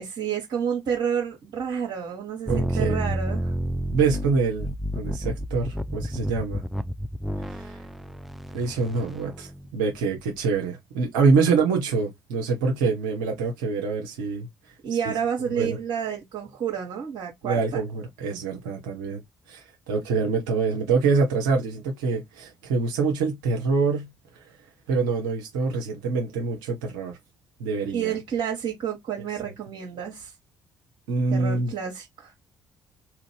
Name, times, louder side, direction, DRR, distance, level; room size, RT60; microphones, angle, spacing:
voice 1, 0.0-3.5 14.8-17.8 27.9-30.3 31.3-32.3, right 8 dB, 55° right, 1.0 m, -30 dB
sound 1, 2.5-10.4, equal, ahead, 0.3 m, -30 dB
voice 2, 2.5-2.9 3.9-4.7 5.0-6.6 7.5-7.8 8.5-14.5 14.9-15.0 15.5-15.8 17.4-19.2 19.5-24.1 24.4-24.5 24.9-27.2 27.6-28.1 31.1-31.7, right 4 dB, 75° right, 0.6 m, -25 dB
2.8 x 2.5 x 3.1 m
figure-of-eight pair, 45°, 10 cm